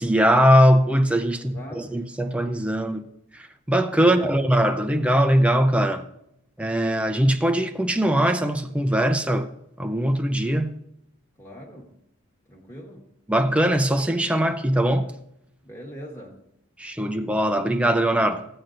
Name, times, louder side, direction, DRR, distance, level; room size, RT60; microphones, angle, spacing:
voice 1, 0.0-3.1 3.3-6.1 6.6-9.5 9.8-10.7 13.3-15.1 16.8-18.5, equal, 5° right, 0.5 m, -21 dB
voice 2, 1.3-2.0 4.0-4.3 11.4-11.9 12.5-13.1 15.6-16.5, equal, 10° left, 1.3 m, -41 dB
16.0 x 8.8 x 2.5 m
head